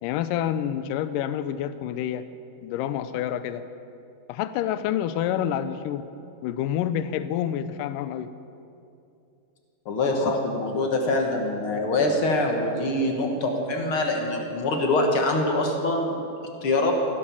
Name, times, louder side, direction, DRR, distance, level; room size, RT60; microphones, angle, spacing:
voice 1, 0.0-2.2 2.6-3.6 4.3-6.1 6.4-8.3 10.2-10.4, left 10 dB, 80° left, 12 dB, 2.0 m, -28 dB
voice 2, 9.8-16.1 16.6-16.9, left 2 dB, 55° left, 2 dB, 1.6 m, -24 dB
16.0 x 12.0 x 7.2 m, 2.6 s
omnidirectional pair, 4.3 m